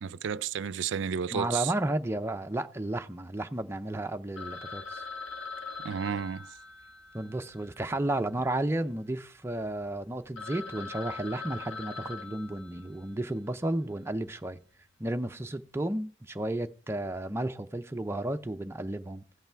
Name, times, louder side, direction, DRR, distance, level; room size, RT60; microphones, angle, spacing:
voice 1, 0.0-1.7 5.8-6.6, right 7 dB, 80° right, 0.4 m, -32 dB
voice 2, 1.3-5.0 7.1-14.6 15.0-19.4, right 1 dB, 15° right, 0.5 m, -33 dB
Telephone, 4.4-8.7 9.0-9.1 9.6-9.7 10.1-10.2 10.4-13.3, left 4 dB, 85° left, 1.7 m, -42 dB
16.0 x 5.7 x 4.4 m
head